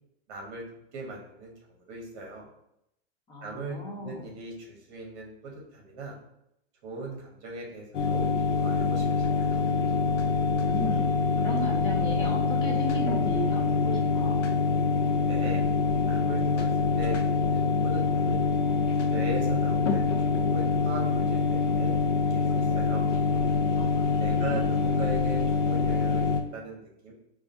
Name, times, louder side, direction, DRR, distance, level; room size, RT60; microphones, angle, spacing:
voice 1, 0.3-0.6 0.9-2.5 3.4-6.2 6.8-8.3 8.5-9.7 15.2-15.6 16.1-18.4 19.1-23.0 24.2-26.2 26.5-27.1, right 2 dB, 35° right, 0 dB, 1.1 m, -39 dB
voice 2, 3.3-4.2 10.6-11.1 11.4-14.4 23.7-24.7, equal, 10° left, -1 dB, 0.5 m, -36 dB
sound 1, 7.9-26.4, left 4 dB, 90° left, 0.6 m, -25 dB
4.8 x 2.4 x 2.6 m, 0.79 s
hypercardioid pair, 145°, 36 cm